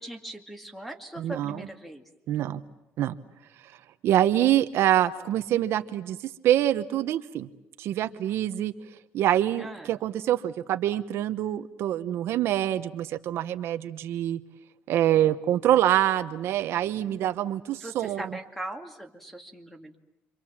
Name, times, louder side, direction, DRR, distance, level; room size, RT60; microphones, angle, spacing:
voice 1, 0.0-2.1 9.6-9.9 17.8-19.9, right 1 dB, 5° left, 5 dB, 2.3 m, -40 dB
voice 2, 1.2-1.6 2.3-2.6 3.0-3.2 4.0-7.5 7.8-8.7 9.1-14.4 14.9-18.2, right 12 dB, 65° right, 9 dB, 1.0 m, -25 dB
29.5 x 25.0 x 7.4 m, 0.88 s
cardioid pair, 140°, 5 cm